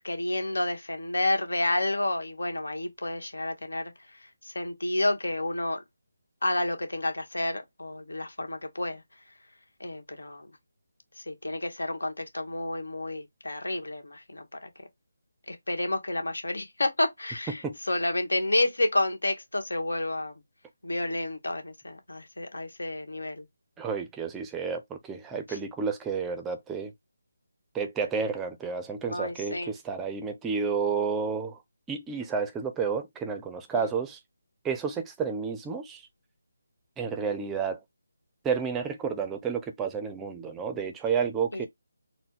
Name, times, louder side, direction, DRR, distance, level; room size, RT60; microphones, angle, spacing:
voice 1, 0.0-3.9 4.4-5.8 6.4-9.0 9.8-10.5 11.3-14.7 15.5-20.3 20.8-23.4 25.5-25.6 29.0-29.7 33.7-33.9 41.5-41.7, left 1 dB, 85° left, 1.3 m, -30 dB
voice 2, 23.8-26.9 27.7-31.6 31.9-34.2 34.6-36.0 37.0-37.8 38.4-41.7, right 6 dB, 10° right, 0.5 m, -31 dB
4.1 x 2.1 x 3.7 m
figure-of-eight pair, 165°, 0 cm